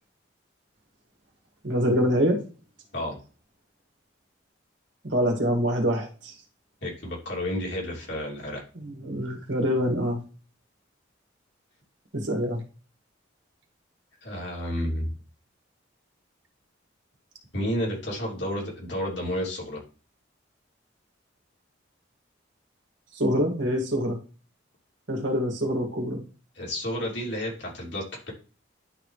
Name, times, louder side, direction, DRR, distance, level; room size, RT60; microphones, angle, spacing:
voice 1, 1.6-2.4 5.0-6.3 8.8-10.2 12.1-12.6 23.2-24.2 25.1-26.2, equal, 70° right, 2 dB, 2.0 m, -25 dB
voice 2, 6.8-8.6 14.2-15.1 17.5-19.8 26.5-28.3, equal, 65° left, -2 dB, 3.0 m, -31 dB
11.0 x 4.1 x 3.3 m, 0.36 s
head